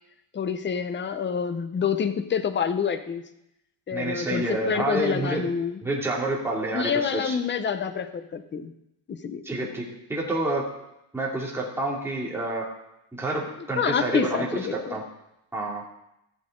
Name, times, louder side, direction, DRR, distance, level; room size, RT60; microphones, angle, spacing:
voice 1, 0.3-3.2 3.9-5.8 6.7-8.7 9.1-9.4 13.8-14.7, left 6 dB, 25° left, 11 dB, 0.7 m, -27 dB
voice 2, 3.9-5.4 5.8-7.4 9.4-10.6 11.1-12.6 13.1-15.0 15.5-15.8, right 2 dB, 5° right, -4 dB, 2.6 m, -28 dB
14.0 x 7.7 x 3.8 m, 0.84 s
cardioid pair, 125°, 48 cm